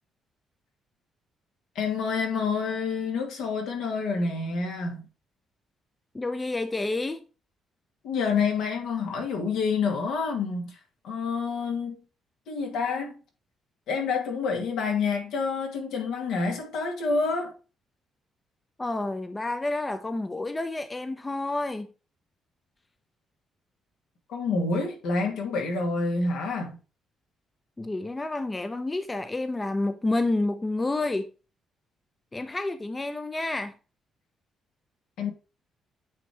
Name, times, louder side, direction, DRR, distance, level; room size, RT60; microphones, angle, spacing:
voice 1, 1.8-5.1 8.0-10.8 11.0-12.0 12.5-13.2 13.9-17.5 24.3-26.8 35.2-35.3, left 4 dB, 85° left, 2.1 m, -28 dB
voice 2, 6.1-7.2 18.8-21.9 27.8-31.3 32.3-33.7, left 2 dB, 20° left, 0.7 m, -29 dB
8.8 x 3.0 x 4.6 m
cardioid pair, 90°, 0 cm